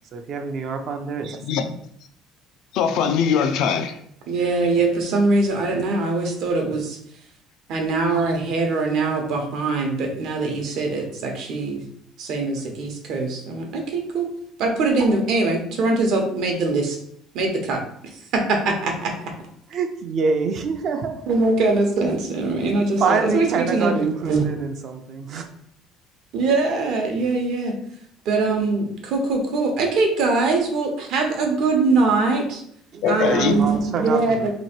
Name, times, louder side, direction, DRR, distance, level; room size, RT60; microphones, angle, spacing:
voice 1, 0.1-1.6 19.7-21.4 22.7-25.5 32.9-34.5, right 5 dB, 50° right, 5 dB, 0.5 m, -26 dB
voice 2, 1.4-1.8 2.7-4.0 33.0-33.6, left 7 dB, 65° left, 9 dB, 0.4 m, -21 dB
voice 3, 4.3-7.0 7.7-11.8 12.2-14.3 14.6-17.0 17.3-19.1 21.3-24.4 26.3-27.7 28.2-32.6 33.1-34.5, right 3 dB, 65° right, 2 dB, 0.9 m, -22 dB
3.0 x 2.6 x 4.3 m, 0.68 s
cardioid pair, 130°, 0 cm